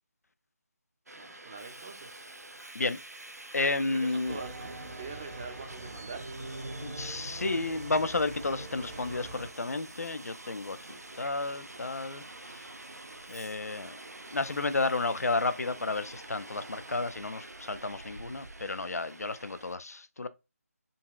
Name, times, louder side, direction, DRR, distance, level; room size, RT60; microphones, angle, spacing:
voice 1, 1.1-2.2 3.9-6.2, right 4 dB, 20° right, 0.5 m, -44 dB
Subway metro underground, 1.1-19.8, right 2 dB, 90° right, 0.6 m, -47 dB
voice 2, 3.5-4.4 6.8-12.7 13.3-14.0 14.3-20.3, left 3 dB, 75° left, 0.4 m, -32 dB
sound 1, 4.2-9.5, right 2 dB, 55° right, 0.9 m, -43 dB
3.9 x 2.3 x 2.3 m
figure-of-eight pair, 160°, 8 cm